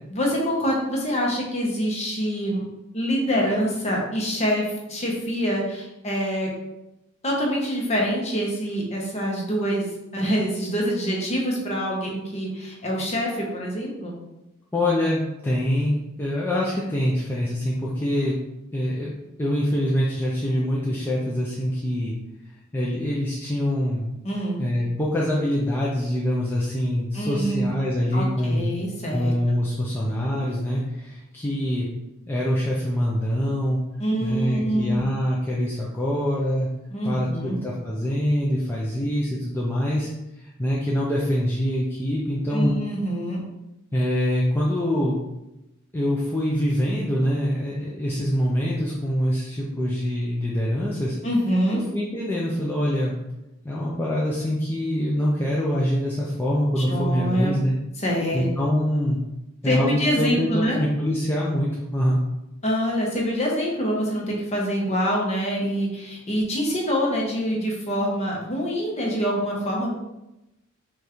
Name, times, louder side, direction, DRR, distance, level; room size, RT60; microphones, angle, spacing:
voice 1, 0.1-2.6 2.9-6.5 7.2-14.1 24.2-24.6 27.1-27.7 28.1-29.3 34.0-35.1 36.9-37.6 42.5-43.4 51.2-51.8 56.8-57.6 58.0-58.5 59.6-60.8 62.6-70.0, equal, 30° left, -2 dB, 0.9 m, -25 dB
voice 2, 14.7-18.4 18.7-22.1 22.7-24.1 24.6-28.7 29.1-31.9 32.3-33.8 34.2-36.7 37.0-40.1 40.3-42.7 43.9-45.2 45.9-51.2 51.9-53.2 53.6-57.7 58.3-59.2 59.6-62.2, equal, 10° left, -6 dB, 0.4 m, -24 dB
5.2 x 2.4 x 3.0 m, 0.94 s
head